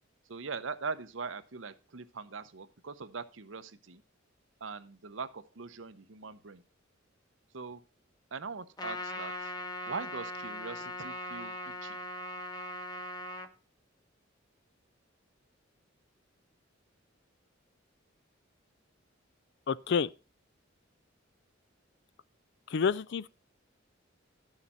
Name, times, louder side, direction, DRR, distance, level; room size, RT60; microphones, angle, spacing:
voice 1, 0.3-4.0 4.6-6.6 7.5-7.8 8.3-9.5 9.9-12.0, right 5 dB, 70° right, 0.8 m, -41 dB
Trumpet, 8.8-13.5, left 1 dB, 20° left, 1.1 m, -39 dB
voice 2, 19.7-20.1 22.7-23.3, left 6 dB, 60° left, 0.4 m, -29 dB
12.0 x 6.7 x 4.3 m
head